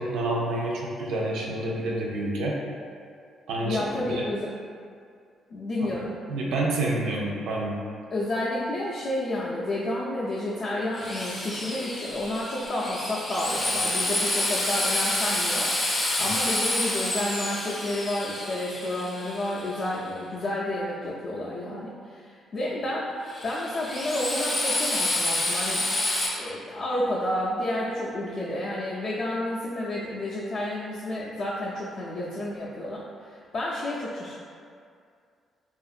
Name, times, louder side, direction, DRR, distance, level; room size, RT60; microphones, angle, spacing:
voice 1, 0.0-2.6 3.5-3.8 4.1-4.3 6.3-7.8 16.2-16.3, right 2 dB, 85° right, -3 dB, 0.4 m, -28 dB
voice 2, 3.6-4.5 5.5-6.1 8.1-15.7 16.2-23.1 23.4-25.9 26.4-34.3, left 1 dB, 60° left, -8 dB, 0.4 m, -30 dB
Drill, 10.9-19.9 23.3-26.3, left 1 dB, 25° left, 0.7 m, -28 dB
2.8 x 2.4 x 2.4 m, 2.3 s
cardioid pair, 90°, 0 cm